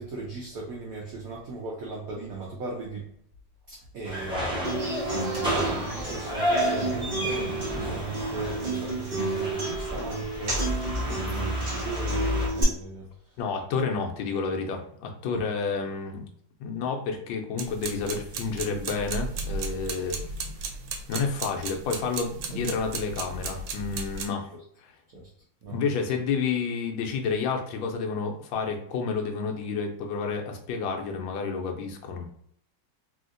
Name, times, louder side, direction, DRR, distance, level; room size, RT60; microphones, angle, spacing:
voice 1, 0.0-3.0 3.7-10.7 11.1-13.4 15.3-15.4 25.1-25.2 25.6-25.9, right 3 dB, 65° right, -3 dB, 0.9 m, -37 dB
sound 1, 4.0-12.5, equal, 5° right, 0.3 m, -31 dB
Human voice / Acoustic guitar, 4.6-12.6, right 2 dB, 30° right, 1.0 m, -32 dB
voice 2, 13.4-16.2 16.6-20.3 21.1-24.5 25.7-32.3, left 5 dB, 85° left, 3 dB, 1.3 m, -30 dB
sound 2, 17.6-24.2, right 4 dB, 90° right, 1.3 m, -35 dB
3.2 x 2.7 x 2.5 m, 0.67 s
omnidirectional pair, 2.0 m